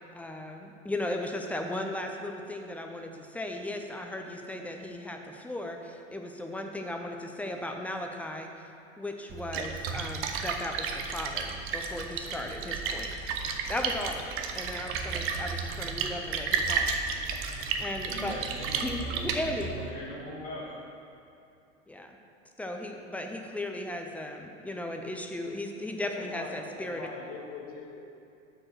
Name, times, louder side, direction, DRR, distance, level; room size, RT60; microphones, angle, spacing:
voice 1, 0.1-8.6 9.0-14.2 14.5-16.9 17.8-18.4 18.8-19.8 21.9-22.2 22.6-27.1, left 1 dB, 5° left, 3 dB, 0.4 m, -36 dB
Splash splatter, 9.3-19.9, right 5 dB, 35° right, 0.7 m, -33 dB
voice 2, 18.1-20.7, left 1 dB, 20° left, -8 dB, 1.8 m, -41 dB
voice 3, 26.0-28.0, left 4 dB, 35° left, 1 dB, 1.3 m, -42 dB
6.0 x 5.0 x 6.3 m, 2.6 s
hypercardioid pair, 90°, 37 cm